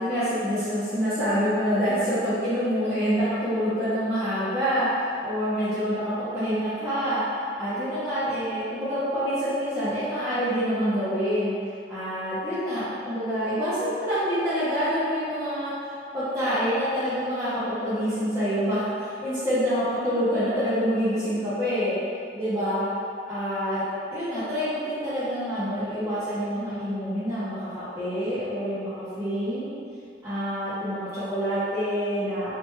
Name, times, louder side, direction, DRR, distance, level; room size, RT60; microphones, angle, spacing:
voice 1, 0.0-7.2 7.6-11.5 11.9-15.7 16.1-21.9 22.3-22.9 23.3-29.7 30.2-32.5, equal, 15° right, -18 dB, 0.8 m, -26 dB
3.3 x 2.5 x 3.0 m, 2.4 s
head